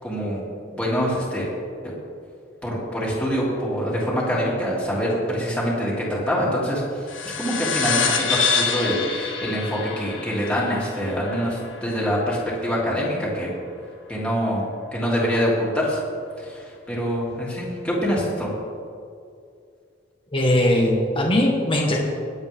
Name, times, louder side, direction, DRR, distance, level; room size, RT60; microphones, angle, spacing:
voice 1, 0.0-0.4 0.7-1.5 1.8-1.9 2.6-13.5 14.1-16.0 16.4-18.5, equal, 5° left, -6 dB, 3.0 m, -25 dB
sound 1, 7.1-12.0, left 5 dB, 80° left, 1.5 m, -26 dB
voice 2, 20.3-22.0, left 1 dB, 30° left, -1 dB, 1.5 m, -20 dB
22.0 x 8.2 x 3.7 m, 2.3 s
head